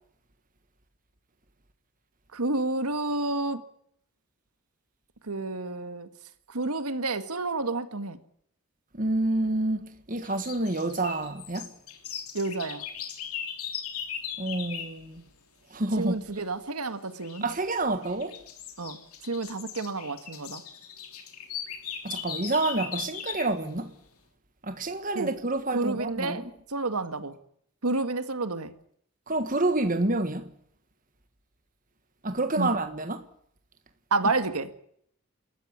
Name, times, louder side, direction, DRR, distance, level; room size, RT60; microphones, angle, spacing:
voice 1, 2.3-3.6 5.2-6.1 6.5-8.2 12.3-12.8 16.0-17.4 18.8-19.0 19.2-20.6 25.2-25.3 25.7-26.4 26.7-27.3 27.8-28.7 32.6-32.7 34.1-34.8, right 3 dB, 85° right, 1.9 m, -30 dB
voice 2, 8.9-11.7 14.4-15.2 15.7-16.2 17.4-18.4 22.0-23.9 24.6-26.5 29.3-30.5 32.2-33.2, right 2 dB, 35° right, 1.5 m, -28 dB
sound 1, 10.2-15.0 17.2-17.6 18.0-23.6, left 8 dB, 85° left, 3.3 m, -38 dB
27.5 x 14.0 x 9.7 m
head